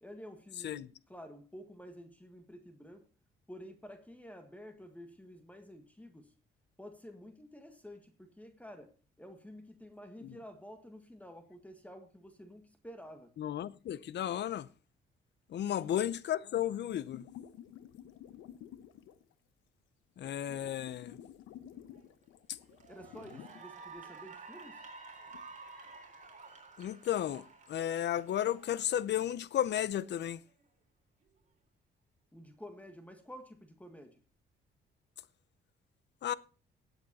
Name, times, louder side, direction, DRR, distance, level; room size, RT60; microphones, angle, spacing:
voice 1, 0.0-3.0 3.5-6.3 6.8-13.3 15.6-15.9 22.9-24.8 32.3-34.2, equal, 5° left, 1.7 m, -50 dB
voice 2, 13.4-14.7 15.5-17.2 20.2-21.2 22.5-22.6 26.8-30.4 36.2-36.3, left 11 dB, 60° left, 0.7 m, -33 dB
sound 1, 17.1-19.3 20.2-23.7 24.1-24.2 25.3-25.4, left 10 dB, 90° left, 1.0 m, -51 dB
Cheering / Applause, 22.0-22.2 22.7-29.2, right 4 dB, 40° right, 3.6 m, -51 dB
16.5 x 8.2 x 4.2 m
cardioid pair, 90°, 20 cm